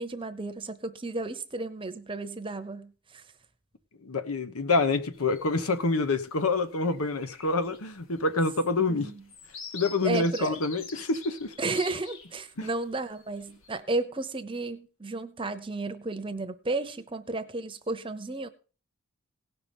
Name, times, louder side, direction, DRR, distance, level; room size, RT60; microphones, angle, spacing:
voice 1, 0.0-3.2 8.9-9.2 10.0-10.6 11.6-18.5, right 2 dB, 25° right, 0.8 m, -33 dB
voice 2, 4.0-9.1 9.7-11.5 12.6-12.7, left 3 dB, 80° left, 1.2 m, -27 dB
sound 1, 5.1-5.7 6.2-6.4 6.7-12.7 13.2-13.8, left 5 dB, 65° left, 1.7 m, -46 dB
17.5 x 5.9 x 5.4 m
head